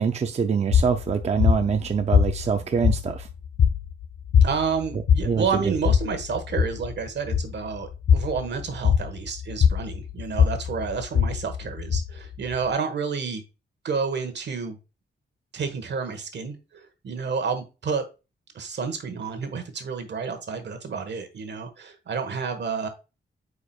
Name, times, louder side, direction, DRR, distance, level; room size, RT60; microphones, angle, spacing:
voice 1, 0.0-3.3 5.2-5.7, right 6 dB, 35° right, 0.5 m, -24 dB
sound 1, 0.7-12.7, left 7 dB, 70° left, 0.4 m, -23 dB
voice 2, 4.4-13.4 13.8-14.8 15.5-18.0 18.5-22.9, right 5 dB, 70° right, 1.4 m, -30 dB
8.6 x 4.9 x 2.3 m
wide cardioid pair, 140°, 19 cm